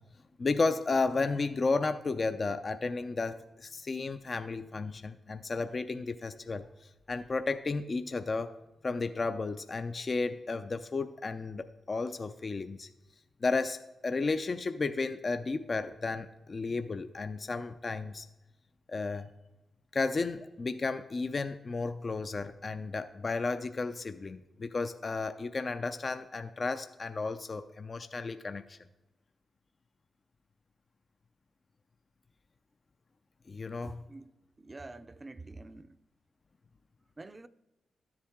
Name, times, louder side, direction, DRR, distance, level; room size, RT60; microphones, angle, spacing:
voice 1, 0.4-8.5 8.8-12.9 13.4-13.8 14.0-18.3 18.9-19.3 19.9-28.8 33.5-34.0, left 3 dB, 45° left, 0.4 m, -33 dB
voice 2, 33.9-36.0 37.2-37.5, right 2 dB, 30° right, 0.5 m, -47 dB
12.5 x 7.2 x 3.6 m
supercardioid pair, 45°, 0 cm